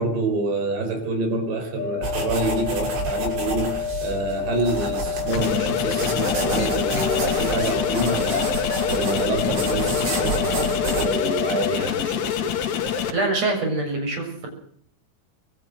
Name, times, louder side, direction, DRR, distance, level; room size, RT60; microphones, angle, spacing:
voice 1, 0.0-12.5, right 2 dB, 70° right, 7 dB, 6.1 m, -27 dB
sound 1, 1.8-11.8, left 8 dB, 50° left, 1.4 m, -29 dB
sound 2, 2.0-11.1, right 3 dB, 90° right, 8.9 m, -30 dB
sound 3, 5.3-13.1, left 8 dB, 65° left, 4.0 m, -26 dB
voice 2, 13.1-14.5, right 2 dB, 35° right, 3 dB, 8.1 m, -24 dB
26.0 x 13.5 x 8.0 m, 0.63 s
omnidirectional pair, 5.3 m